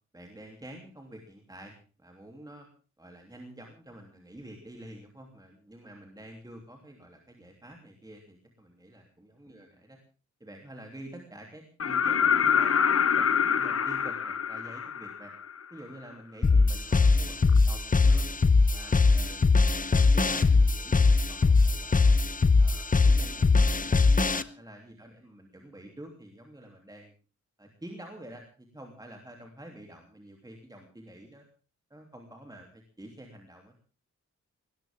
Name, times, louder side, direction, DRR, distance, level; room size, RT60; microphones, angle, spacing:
voice 1, 0.1-2.7 3.0-10.0 10.4-12.7 13.2-15.3 15.7-18.3 18.7-19.4 19.9-22.2 22.5-27.1 27.6-31.4 31.9-33.8, right 1 dB, 15° right, 2 dB, 3.1 m, -48 dB
sound 1, 11.8-15.6 17.5-17.6, left 7 dB, 55° left, 1.2 m, -25 dB
sound 2, 16.4-24.4, left 3 dB, 30° left, 0.9 m, -21 dB
20.0 x 19.5 x 3.7 m, 0.38 s
wide cardioid pair, 160°, 29 cm